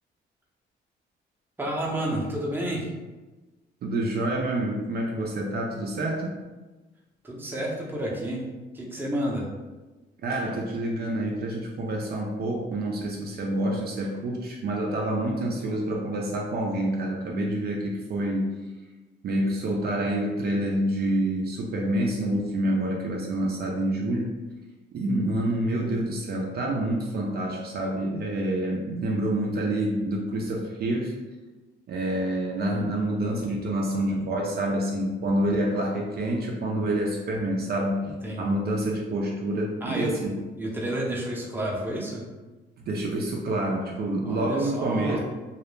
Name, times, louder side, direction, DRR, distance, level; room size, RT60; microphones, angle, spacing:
voice 1, 1.6-2.9 7.2-8.4 8.7-9.4 38.2-38.4 39.8-40.1 40.6-42.2 44.3-45.2, right 1 dB, 10° right, -3 dB, 0.7 m, -30 dB
voice 2, 3.8-6.4 10.2-18.6 19.2-24.3 24.9-31.1 31.9-40.3 42.9-45.2, right 1 dB, 55° right, -1 dB, 0.4 m, -27 dB
2.3 x 2.0 x 3.1 m, 1.2 s
cardioid pair, 90°, 20 cm